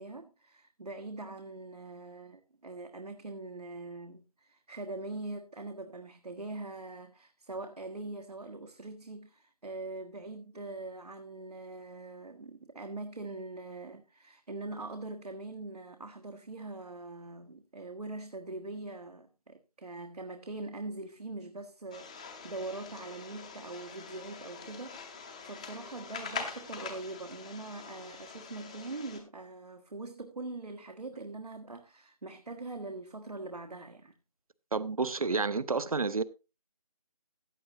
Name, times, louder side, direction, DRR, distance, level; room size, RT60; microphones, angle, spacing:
voice 1, 0.0-34.1, right 2 dB, 90° right, 1.4 m, -42 dB
sound 1, 21.9-29.2, left 5 dB, 10° left, 0.8 m, -44 dB
voice 2, 34.7-36.2, right 4 dB, 70° right, 0.9 m, -30 dB
15.0 x 8.7 x 2.8 m
figure-of-eight pair, 165°, 19 cm